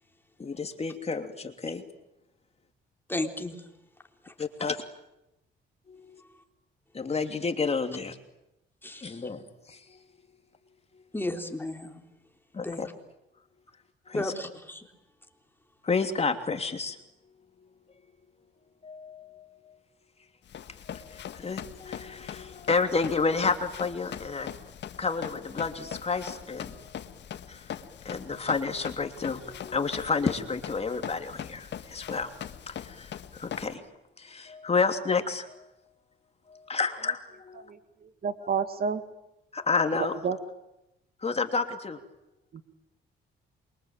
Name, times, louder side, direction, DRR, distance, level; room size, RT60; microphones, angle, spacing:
voice 1, 0.4-1.8 4.4-4.8 5.9-6.2 6.9-8.2 9.0-10.0 12.5-12.9 14.1-14.3 15.8-17.0 18.8-19.7 20.9-24.5 25.0-26.9 27.5-27.7 28.0-32.3 32.7-33.8 34.2-35.7 36.7-37.7 39.5-40.2 41.2-42.0, left 4 dB, 30° left, 6 dB, 3.0 m, -30 dB
voice 2, 3.1-3.7 4.2-4.3 8.8-9.2 11.1-12.0 12.6-12.9 14.1-14.9, left 1 dB, 10° left, 4 dB, 3.9 m, -34 dB
Run, 20.5-33.7, left 9 dB, 60° left, 1.7 m, -41 dB
voice 3, 38.2-39.0 40.2-40.4 42.5-42.6, right 6 dB, 50° right, 10 dB, 2.2 m, -28 dB
28.0 x 24.0 x 9.0 m, 0.89 s
cardioid pair, 90°, 20 cm